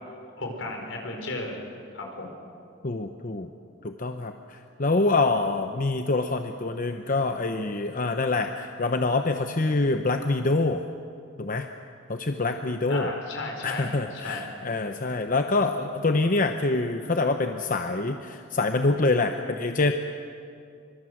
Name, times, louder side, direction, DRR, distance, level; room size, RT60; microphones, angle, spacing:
voice 1, 0.4-1.6 1.9-2.3 12.9-14.4, left 2 dB, 75° left, 2 dB, 4.9 m, -34 dB
voice 2, 2.8-3.5 3.8-10.8 11.4-11.7 12.1-13.1 13.6-19.9, left 3 dB, 45° left, 6 dB, 0.9 m, -25 dB
24.5 x 23.5 x 7.8 m, 2.4 s
head